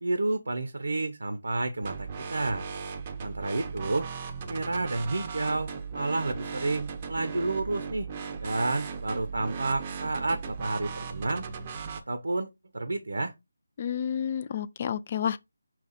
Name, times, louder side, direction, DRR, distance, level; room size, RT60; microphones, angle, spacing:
voice 1, 0.0-2.7 3.2-4.1 4.5-8.1 8.4-11.5 12.1-13.3, right 2 dB, 70° right, 0.7 m, -30 dB
sound 1, 1.8-12.0, right 5 dB, 25° right, 0.6 m, -37 dB
voice 2, 13.8-15.4, left 8 dB, 30° left, 0.3 m, -30 dB
5.8 x 2.3 x 3.9 m
figure-of-eight pair, 160°, 0 cm